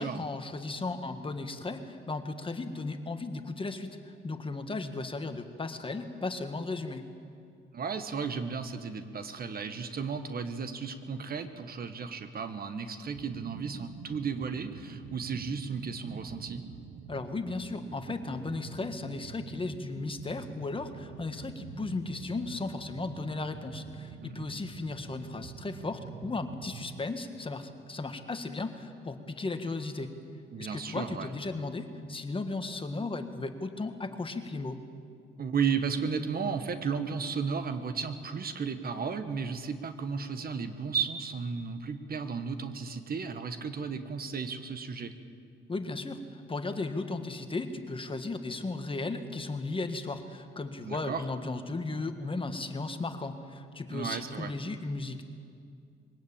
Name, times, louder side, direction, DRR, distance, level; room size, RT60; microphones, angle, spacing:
voice 1, 0.0-7.0 17.1-30.1 30.6-34.8 45.7-55.3, left 3 dB, 25° left, 8 dB, 1.6 m, -36 dB
voice 2, 7.7-16.6 24.3-24.4 30.5-31.3 35.4-45.1 50.8-51.2 53.9-54.5, right 5 dB, 50° right, 9 dB, 1.5 m, -34 dB
sound 1, 13.1-27.1, right 7 dB, 80° right, 1.1 m, -46 dB
22.0 x 17.5 x 8.8 m, 2.3 s
cardioid pair, 90°, 20 cm